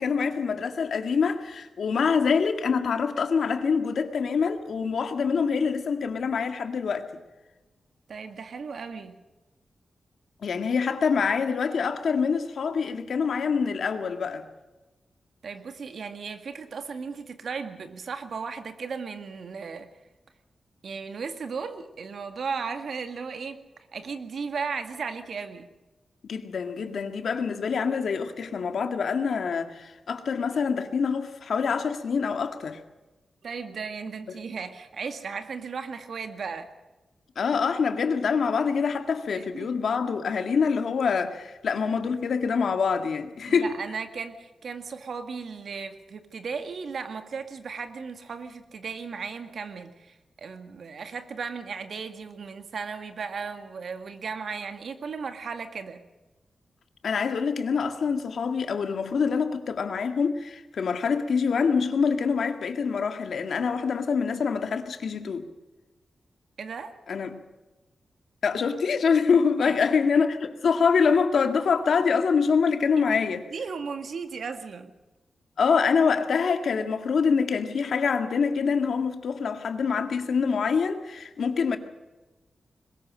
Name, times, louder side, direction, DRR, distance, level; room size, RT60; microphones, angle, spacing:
voice 1, 0.0-7.1 10.4-14.5 26.3-32.8 34.3-34.4 37.4-43.7 57.0-65.5 67.1-67.4 68.4-73.4 75.6-81.8, left 5 dB, 75° left, 1.9 m, -25 dB
voice 2, 8.1-9.2 15.4-19.9 20.8-25.7 33.4-36.7 39.3-39.7 43.5-56.1 66.6-67.0 69.6-69.7 73.3-74.9, right 5 dB, 70° right, 2.0 m, -36 dB
22.0 x 20.0 x 6.4 m
wide cardioid pair, 100°, 0 cm